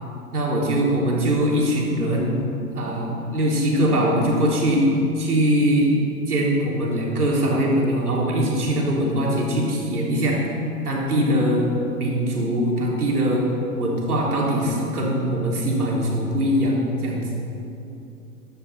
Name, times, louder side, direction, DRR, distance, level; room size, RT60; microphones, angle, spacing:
voice 1, 0.3-2.4 2.7-4.9 5.2-5.9 6.3-10.4 10.8-11.7 12.0-13.4 13.7-17.2, equal, 85° right, -3 dB, 3.4 m, -22 dB
15.0 x 11.0 x 4.1 m, 2.8 s
hypercardioid pair, 105°, 44 cm